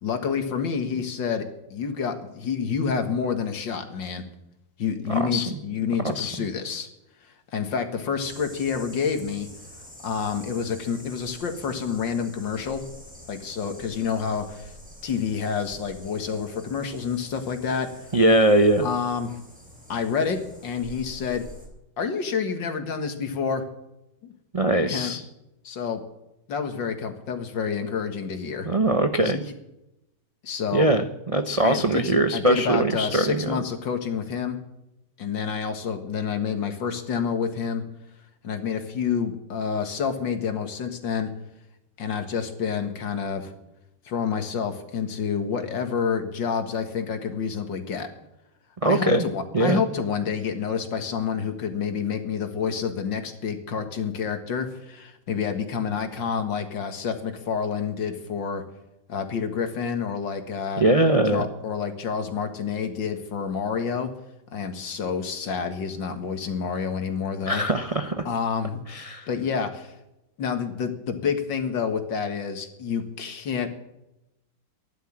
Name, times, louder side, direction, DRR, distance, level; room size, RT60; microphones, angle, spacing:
voice 1, 0.0-1.4 1.7-4.2 4.8-6.9 7.2-9.5 10.0-12.8 13.3-14.7 15.0-17.9 18.8-19.4 19.9-21.4 22.0-23.6 24.2-24.3 24.9-25.1 25.6-26.0 26.5-28.7 29.2-29.3 30.4-30.9 31.6-34.6 35.2-37.8 38.4-41.3 42.0-43.5 44.1-48.1 48.8-58.6 59.1-60.8 61.3-64.1 64.5-67.6 68.3-68.8 69.3-70.0 70.4-73.7, left 6 dB, 70° left, 7 dB, 2.3 m, -28 dB
voice 2, 5.1-5.4 6.0-6.3 18.1-18.9 24.5-25.2 28.6-29.4 30.7-33.6 48.8-49.2 49.5-49.8 60.8-61.4 67.4-68.2 68.9-69.3, right 1 dB, 40° right, 7 dB, 0.5 m, -21 dB
sound 1, 8.2-21.7, left 1 dB, 5° right, 4.1 m, -47 dB
13.5 x 11.0 x 7.3 m, 0.89 s
omnidirectional pair, 2.1 m